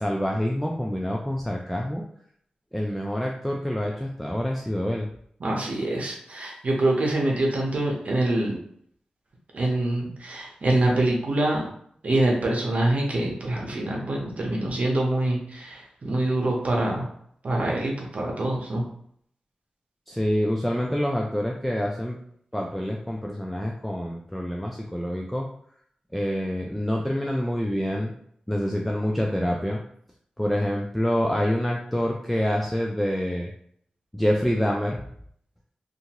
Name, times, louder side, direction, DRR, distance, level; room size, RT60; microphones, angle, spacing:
voice 1, 0.0-2.0 2.7-5.1 20.1-22.2 22.5-25.5 26.1-28.1 28.5-29.8 30.4-33.5 34.1-35.0, equal, 5° left, -1 dB, 0.3 m, -26 dB
voice 2, 5.4-8.6 9.5-11.6 12.0-17.1 17.4-18.8, right 1 dB, 60° right, -1 dB, 0.8 m, -25 dB
2.7 x 2.5 x 2.9 m, 0.67 s
wide cardioid pair, 90°, 3 cm